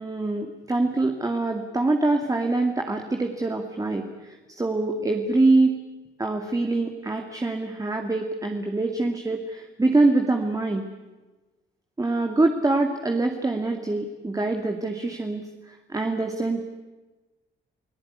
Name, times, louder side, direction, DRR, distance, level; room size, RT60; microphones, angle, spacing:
voice 1, 0.0-4.0 4.6-5.8 6.2-10.8 12.0-15.4 15.7-16.6, right 2 dB, 15° right, 3 dB, 2.3 m, -24 dB
29.5 x 17.5 x 9.7 m, 1.2 s
cardioid pair, 90°, 20 cm